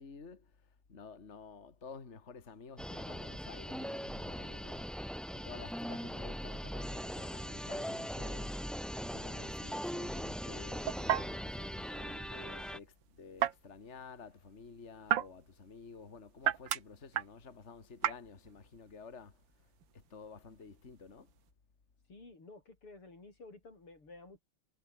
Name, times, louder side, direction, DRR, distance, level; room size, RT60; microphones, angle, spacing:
voice 1, 0.0-4.9 5.3-8.5 9.0-21.3, left 5 dB, 30° left, 2.4 m, -52 dB
sound 1, 2.8-12.8, equal, ahead, 1.4 m, -40 dB
sound 2, 8.5-21.5, right 11 dB, 65° right, 1.7 m, -39 dB
voice 2, 22.1-24.4, left 3 dB, 85° left, 8.1 m, -53 dB
omnidirectional pair, 2.4 m